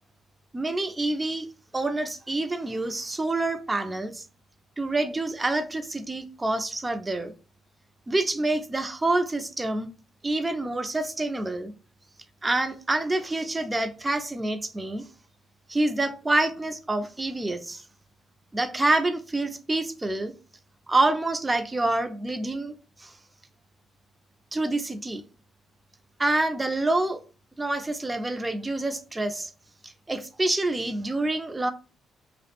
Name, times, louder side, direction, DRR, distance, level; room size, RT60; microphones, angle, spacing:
voice 1, 0.5-1.5 1.7-4.2 4.8-7.3 8.1-9.9 10.2-11.7 12.4-15.0 15.7-17.8 18.5-20.3 20.9-23.1 24.5-25.2 26.2-27.2 27.6-29.5 29.8-31.7, right 2 dB, 20° right, 0.3 m, -27 dB
2.4 x 2.0 x 2.8 m
cardioid pair, 90°, 0 cm